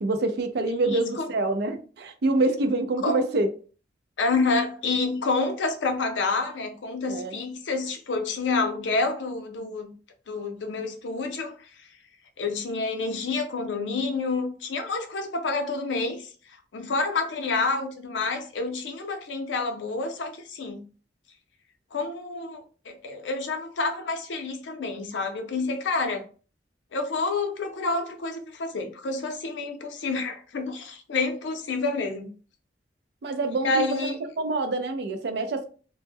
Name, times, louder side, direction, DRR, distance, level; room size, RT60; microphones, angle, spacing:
voice 1, 0.0-3.5 7.1-7.4 33.2-35.7, right 2 dB, 65° right, 0.4 m, -26 dB
voice 2, 0.9-1.3 3.0-3.2 4.2-9.9 10.3-11.5 12.4-16.3 16.7-20.8 21.9-26.2 26.9-32.3 33.6-34.2, left 3 dB, 85° left, 0.5 m, -28 dB
2.1 x 2.1 x 3.3 m
head